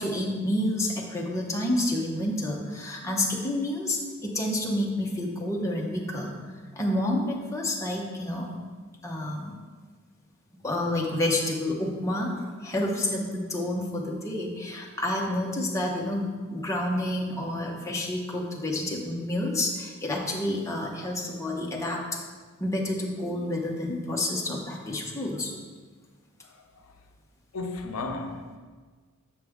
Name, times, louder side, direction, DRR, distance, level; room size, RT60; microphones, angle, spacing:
voice 1, 0.0-6.4 6.7-8.5 9.0-9.5 10.6-22.0 22.6-25.5, left 1 dB, 15° left, 0.8 m, -29 dB
voice 2, 27.5-28.6, left 3 dB, 85° left, 0.6 m, -33 dB
6.9 x 5.1 x 3.5 m
head